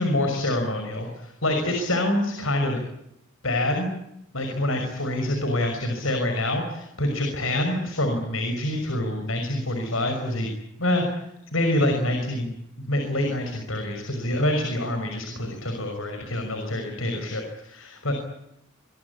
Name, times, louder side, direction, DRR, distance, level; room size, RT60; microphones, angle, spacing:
voice 1, 0.0-2.8 3.4-3.9 4.3-10.5 10.8-11.2 11.5-12.5 12.9-18.1, left 1 dB, 80° left, 4 dB, 6.1 m, -26 dB
26.5 x 22.5 x 8.5 m, 0.82 s
head